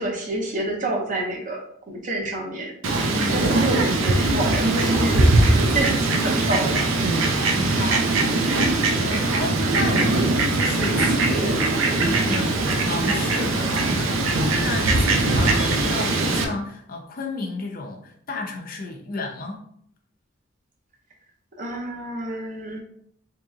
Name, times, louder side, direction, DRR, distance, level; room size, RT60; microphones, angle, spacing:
voice 1, 0.0-2.7 3.3-6.9 21.6-22.8, right 1 dB, 40° right, 0 dB, 0.7 m, -28 dB
Fowl, 2.8-16.4, right 2 dB, 85° right, 0.6 m, -21 dB
voice 2, 3.1-3.4 7.4-8.6 9.0-19.6, left 3 dB, 45° left, 2 dB, 0.6 m, -32 dB
3.1 x 2.8 x 3.6 m, 0.65 s
head